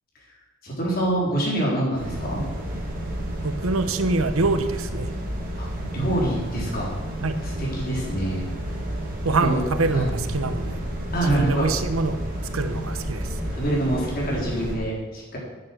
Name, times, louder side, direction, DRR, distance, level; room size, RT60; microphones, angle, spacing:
voice 1, 0.6-2.4 5.6-5.7 5.9-6.9 7.4-8.5 9.4-9.6 9.9-10.1 11.1-11.7 13.5-15.4, right 1 dB, 45° left, -3 dB, 3.7 m, -25 dB
sound 1, 1.9-14.7, equal, 40° right, 2.6 m, -31 dB
voice 2, 3.4-5.1 7.2-7.4 9.2-10.8 11.3-12.2 12.5-13.4, right 3 dB, 90° right, 9 dB, 1.0 m, -25 dB
9.5 x 7.3 x 7.7 m, 1.2 s
head